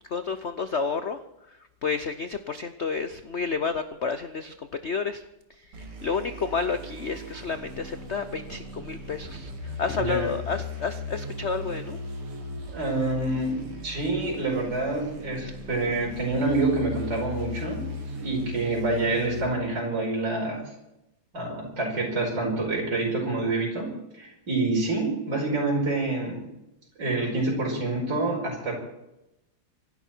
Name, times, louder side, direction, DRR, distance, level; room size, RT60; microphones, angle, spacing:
voice 1, 0.1-1.2 1.5-5.2 5.6-12.0, left 5 dB, 85° left, 10 dB, 0.6 m, -30 dB
sound 1, 5.7-19.5, left 2 dB, 80° right, 3.2 m, -38 dB
voice 2, 10.0-10.3 12.7-17.8 18.1-20.6 21.3-23.9 24.2-26.4 27.0-28.7, right 2 dB, 50° right, -3 dB, 5.7 m, -27 dB
25.5 x 12.0 x 4.5 m, 0.89 s
omnidirectional pair, 2.4 m